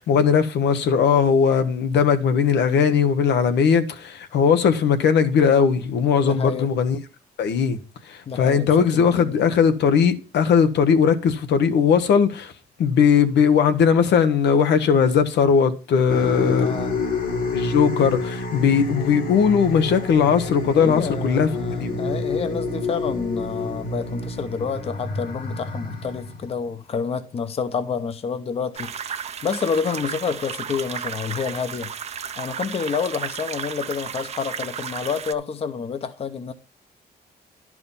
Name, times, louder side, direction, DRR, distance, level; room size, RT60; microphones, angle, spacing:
voice 1, 0.0-7.0 7.4-7.8 8.1-12.5 12.8-16.8 17.5-22.0, left 6 dB, 85° left, 1.1 m, -19 dB
voice 2, 6.2-6.7 8.3-9.3 16.6-16.9 20.7-31.9 32.4-36.5, left 6 dB, 35° left, 0.8 m, -29 dB
sound 1, 16.1-26.7, left 2 dB, 60° left, 1.9 m, -28 dB
sound 2, 28.7-35.3, right 7 dB, 40° right, 0.6 m, -33 dB
11.0 x 4.9 x 5.4 m
wide cardioid pair, 170°, 17 cm